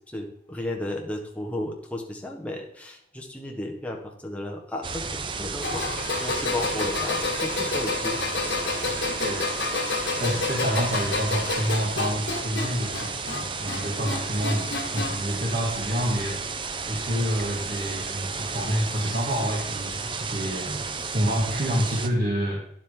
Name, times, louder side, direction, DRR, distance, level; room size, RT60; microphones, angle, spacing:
voice 1, 0.1-5.8 6.1-8.5 10.2-10.4, left 1 dB, 5° left, 0 dB, 1.3 m, -34 dB
sound 1, 4.8-22.1, right 4 dB, 25° right, 0.5 m, -33 dB
sound 2, 5.6-15.3 15.7-16.3 17.4-17.5 18.6-18.7, left 3 dB, 75° left, 1.7 m, -30 dB
voice 2, 9.1-9.5 10.2-16.4 16.9-20.8 21.1-22.6, equal, 50° right, -2 dB, 1.8 m, -28 dB
10.5 x 7.4 x 3.8 m, 0.73 s
head